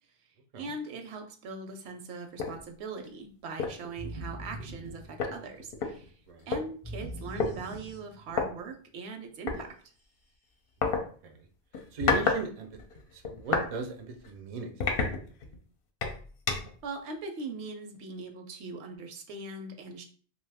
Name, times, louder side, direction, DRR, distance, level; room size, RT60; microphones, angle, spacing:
voice 1, 0.6-6.1 6.5-9.7 16.8-20.0, right 3 dB, 75° right, 5 dB, 0.8 m, -40 dB
sound 1, 2.4-2.6 3.0-3.2 3.6-3.9 4.8-4.9 5.2-6.6 7.4-7.5 8.3-8.5 9.5-9.6 10.8-11.0 11.7-12.4 12.7-13.7 14.2-14.3 14.8-15.6 16.0-16.8, left 4 dB, 60° left, 0.7 m, -30 dB
sound 2, 4.0-5.7 6.8-8.5, right 1 dB, 20° left, 0.4 m, -42 dB
voice 2, 10.9-11.3 11.9-12.7 13.1-14.9, right 2 dB, 50° right, 4 dB, 0.4 m, -37 dB
2.6 x 2.3 x 3.3 m, 0.44 s
omnidirectional pair, 1.1 m